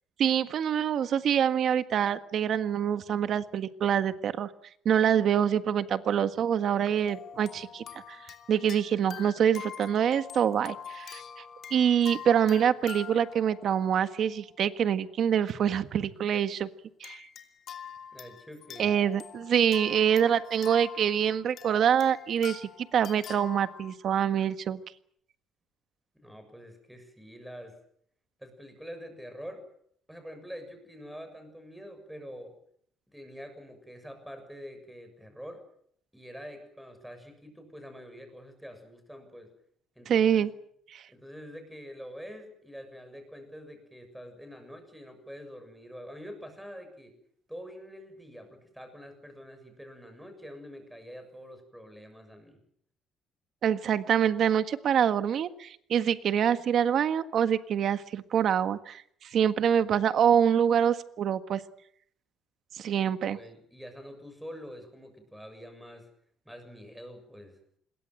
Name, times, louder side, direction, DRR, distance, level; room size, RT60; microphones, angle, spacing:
voice 1, 0.2-4.5 4.9-8.2 8.5-11.2 11.7-16.7 17.0-17.2 18.8-24.8 40.1-40.5 40.9-41.0 53.6-61.6 62.8-63.4, right 8 dB, 50° right, 10 dB, 1.6 m, -25 dB
sound 1, 6.8-14.6 15.3-15.5 17.0-24.0, left 8 dB, 50° left, 2.9 m, -45 dB
voice 2, 18.1-18.9 26.1-27.8 28.4-29.6 30.1-32.5 33.1-35.6 36.1-39.5 40.0-40.5 41.1-47.1 47.5-52.6 63.0-66.1 66.5-67.6, equal, ahead, 7 dB, 6.9 m, -46 dB
26.5 x 22.0 x 7.8 m, 0.67 s
cardioid pair, 155°, 0 cm